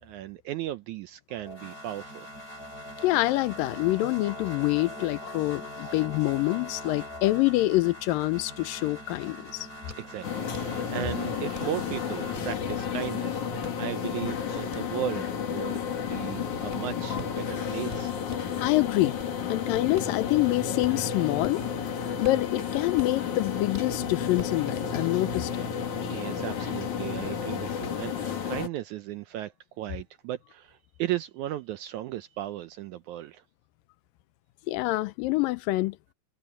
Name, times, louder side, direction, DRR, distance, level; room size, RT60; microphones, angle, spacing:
voice 1, 0.0-2.3 10.0-15.8 16.1-18.2 26.0-29.5 29.8-33.4, right 13 dB, 80° right, 1.8 m, -36 dB
sound 1, 1.3-12.4, left 1 dB, 25° left, 6.8 m, -42 dB
voice 2, 3.0-9.7 18.6-19.2 19.5-21.6 22.2-25.6 34.7-36.0, left 18 dB, 80° left, 2.4 m, -26 dB
sound 2, 9.9-18.6 19.0-21.8 22.1-24.7, right 1 dB, 15° right, 7.6 m, -48 dB
sound 3, 10.2-28.7, left 7 dB, 60° left, 3.9 m, -32 dB
omnidirectional pair, 4.0 m